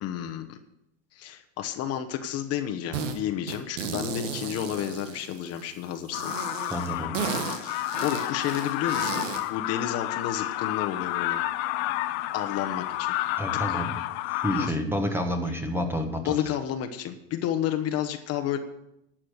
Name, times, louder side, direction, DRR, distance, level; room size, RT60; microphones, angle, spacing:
voice 1, 0.0-0.6 1.1-6.4 7.6-11.5 12.3-13.1 13.7-13.8 14.6-14.7 16.2-18.6, left 10 dB, 40° left, 6 dB, 1.1 m, -31 dB
sound 1, 2.9-3.2 3.5-5.6 6.1-9.5, right 6 dB, 90° right, 1.6 m, -34 dB
sound 2, 6.1-14.7, left 16 dB, 55° left, 0.8 m, -30 dB
voice 2, 6.7-7.2 13.4-14.0 14.3-16.4, equal, 5° right, 5 dB, 1.2 m, -29 dB
12.0 x 7.4 x 6.5 m, 0.80 s
supercardioid pair, 125°, 37 cm